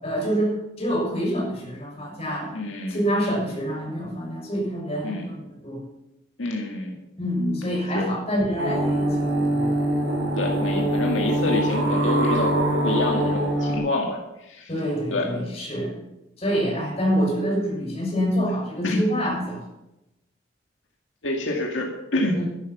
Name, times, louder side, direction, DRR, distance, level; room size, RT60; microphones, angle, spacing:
voice 1, 0.0-2.5 2.9-5.8 7.2-9.8 14.7-16.0 16.4-19.6 22.3-22.5, equal, 35° left, -3 dB, 6.9 m, -26 dB
voice 2, 2.5-3.0 5.0-5.3 6.4-7.0 7.9-8.1 10.4-12.5 12.8-14.7 15.1-15.3 18.8-19.0 21.2-22.4, left 2 dB, 80° left, 0 dB, 2.0 m, -27 dB
sound 1, 8.6-13.8, right 1 dB, 80° right, 4.2 m, -23 dB
13.0 x 11.5 x 6.0 m, 0.93 s
head